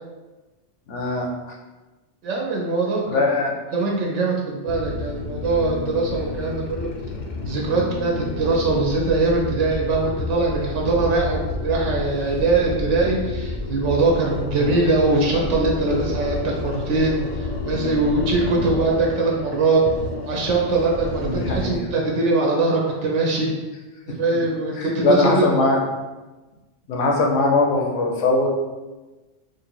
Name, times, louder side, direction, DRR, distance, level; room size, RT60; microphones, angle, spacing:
voice 1, 0.9-1.6 3.1-3.5 14.5-14.7 21.2-21.8 24.8-25.8 26.9-28.5, left 3 dB, 80° left, 0 dB, 1.0 m, -21 dB
voice 2, 2.2-3.2 3.7-6.9 7.4-19.8 20.2-23.5 24.1-25.6, right 3 dB, 85° right, -1 dB, 1.0 m, -22 dB
sound 1, 4.7-21.8, left 3 dB, 60° left, 0.5 m, -30 dB
3.3 x 2.6 x 4.3 m, 1.2 s
omnidirectional pair, 1.2 m